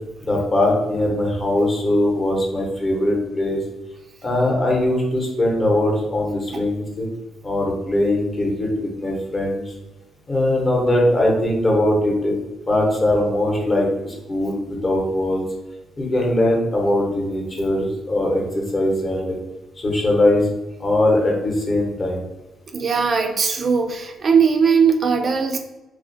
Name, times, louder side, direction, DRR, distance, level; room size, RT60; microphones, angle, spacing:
voice 1, 0.2-3.6 4.2-7.1 7.4-9.7 10.3-12.3 12.7-15.4 16.0-19.4 19.8-20.5 20.8-22.2, left 1 dB, 35° left, -2 dB, 0.8 m, -20 dB
voice 2, 22.7-25.6, right 5 dB, 45° right, 3 dB, 0.3 m, -19 dB
2.4 x 2.0 x 2.6 m, 1.0 s
cardioid pair, 90°, 0 cm